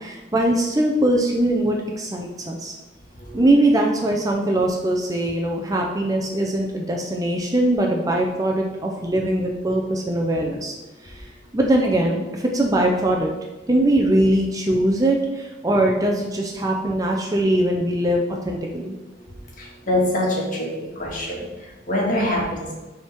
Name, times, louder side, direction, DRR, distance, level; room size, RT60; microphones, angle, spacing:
voice 1, 0.0-2.8 3.3-10.8 11.0-11.3 11.5-13.3 13.7-18.9, right 1 dB, 20° right, 0 dB, 0.5 m, -21 dB
voice 2, 3.1-3.5 11.1-11.2 19.2-20.7 20.9-22.7, left 1 dB, 45° left, -3 dB, 1.7 m, -25 dB
6.9 x 3.6 x 4.5 m, 1.1 s
head